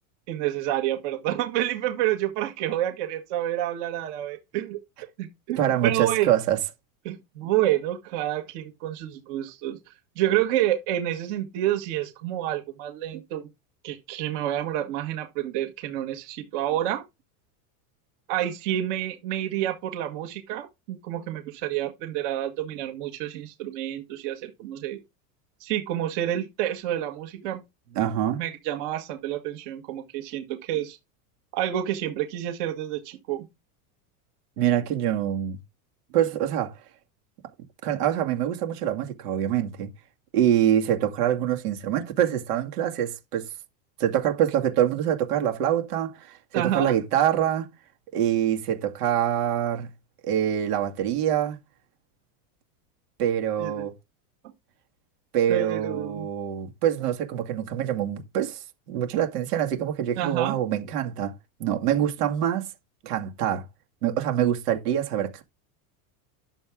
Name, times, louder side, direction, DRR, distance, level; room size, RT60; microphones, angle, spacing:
voice 1, 0.3-4.8 5.2-6.3 7.0-9.8 10.1-13.5 13.8-17.0 18.3-25.0 25.6-27.6 28.4-31.0 31.5-33.5 46.5-46.9 53.6-53.7 55.5-56.3 60.2-60.5, right 13 dB, 50° right, 1.7 m, -28 dB
voice 2, 5.6-6.6 28.0-28.4 34.6-35.6 36.1-36.7 37.8-39.9 40.3-43.4 44.0-47.7 48.1-49.9 50.2-51.6 53.2-53.9 55.3-61.3 61.6-62.7 63.0-63.6 64.0-65.4, right 10 dB, 85° right, 2.4 m, -25 dB
11.0 x 7.1 x 3.7 m
supercardioid pair, 165°, 45 cm